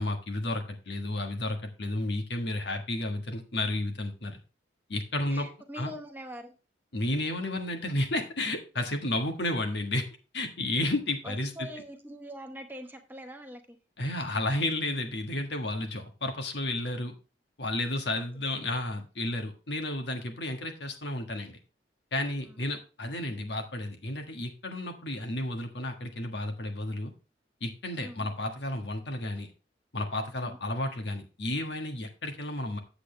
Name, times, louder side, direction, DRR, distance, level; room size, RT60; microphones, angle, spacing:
voice 1, 0.0-4.4 4.9-5.5 5.8-5.9 6.9-10.1 10.3-11.7 14.0-17.1 17.6-21.6 22.1-27.1 27.6-29.5 29.9-32.8, left 1 dB, 65° left, 4 dB, 1.5 m, -32 dB
voice 2, 5.3-6.6 11.2-13.8 18.2-18.3 22.4-22.6 28.0-28.3 30.4-30.6, equal, 10° right, 5 dB, 0.9 m, -43 dB
8.5 x 7.9 x 3.3 m, 0.34 s
head